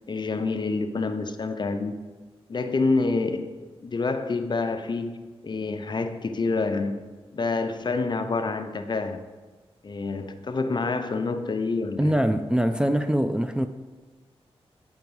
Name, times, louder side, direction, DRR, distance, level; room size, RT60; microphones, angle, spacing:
voice 1, 0.1-2.0 2.5-3.5 3.8-5.2 5.4-7.0 7.3-9.2 9.8-12.1, left 3 dB, 45° left, 0.6 m, -27 dB
voice 2, 12.0-13.7, equal, 10° right, 0.3 m, -23 dB
8.1 x 4.5 x 5.4 m
wide cardioid pair, 95°, 11 cm